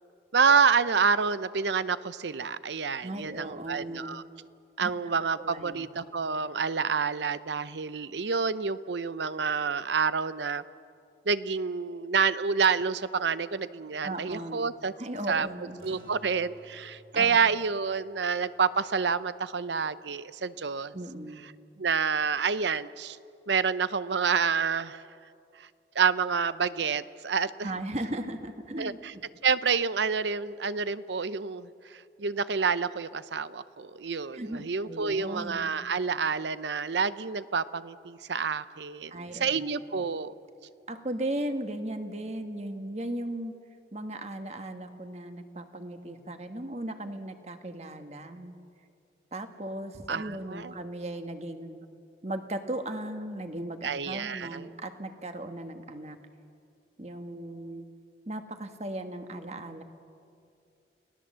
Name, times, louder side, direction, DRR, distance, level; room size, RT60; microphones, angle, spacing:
voice 1, 0.3-4.2 4.8-10.6 11.3-14.9 15.3-15.5 15.8-20.9 21.8-23.2 23.5-25.0 25.6-25.7 25.9-27.7 28.8-29.1 29.4-40.3 50.1-50.7 53.8-54.7, right 5 dB, 80° right, 15 dB, 0.7 m, -28 dB
voice 2, 3.0-4.2 4.8-4.9 5.4-5.9 14.0-14.7 15.0-16.0 17.1-17.4 20.9-21.4 27.6-29.2 34.3-35.7 39.1-39.6 39.9-40.0 40.9-43.5 43.9-48.5 49.3-51.8 52.2-56.2 57.0-57.9 58.3-59.8, right 1 dB, 35° right, 7 dB, 1.5 m, -37 dB
sound 1, 15.8-20.4, right 1 dB, 55° right, 4.9 m, -55 dB
29.5 x 18.0 x 7.5 m, 2.5 s
head